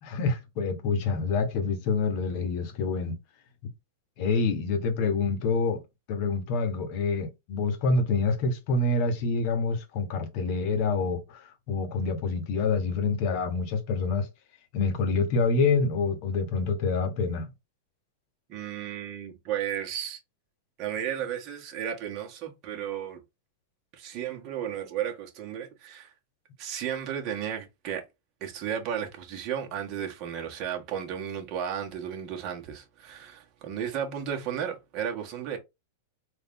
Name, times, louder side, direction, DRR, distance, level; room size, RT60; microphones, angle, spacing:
voice 1, 0.0-3.2 4.2-5.8 6.1-14.3 14.7-17.5, left 4 dB, 50° left, 1.0 m, -27 dB
voice 2, 18.5-20.2 20.8-23.2 23.9-26.1 26.6-28.0 28.4-35.6, right 9 dB, 40° right, 1.4 m, -34 dB
4.0 x 2.6 x 3.6 m
supercardioid pair, 145°, 0 cm